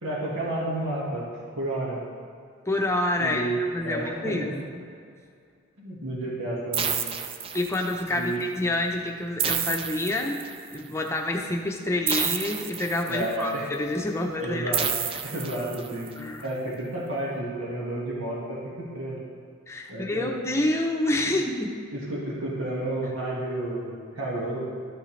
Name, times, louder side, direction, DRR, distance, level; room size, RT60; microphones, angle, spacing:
voice 1, 0.0-1.3 1.6-2.0 3.2-4.5 5.8-7.0 8.2-8.4 13.1-13.7 14.4-14.9 15.2-16.1 16.4-19.2 19.9-20.3 21.2-21.3 21.9-24.6, right 1 dB, 80° right, -6 dB, 1.8 m, -31 dB
voice 2, 2.7-4.8 7.5-10.4 10.7-14.8 16.2-16.5 19.7-21.8, left 1 dB, 15° left, 1 dB, 0.7 m, -28 dB
sound 1, 6.7-8.1 9.4-10.8 12.1-13.4 14.7-16.1, right 7 dB, 25° right, 0.4 m, -30 dB
12.5 x 6.5 x 3.3 m, 2.3 s
head